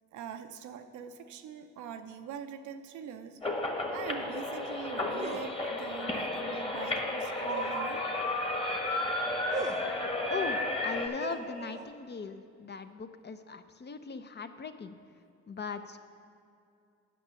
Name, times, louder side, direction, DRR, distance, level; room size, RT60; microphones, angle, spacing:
voice 1, 0.1-3.4 3.9-8.0, right 7 dB, 80° right, 8 dB, 0.6 m, -43 dB
sound 1, 3.4-11.1, left 2 dB, 20° left, 1.4 m, -33 dB
sound 2, 5.2-5.5 7.5-7.9 9.5-9.9 11.2-11.9, right 2 dB, 25° right, 0.8 m, -38 dB
voice 2, 10.3-15.0 15.5-16.0, left 5 dB, 35° left, 9 dB, 0.6 m, -39 dB
8.4 x 5.9 x 6.9 m, 2.5 s
supercardioid pair, 60°, 30 cm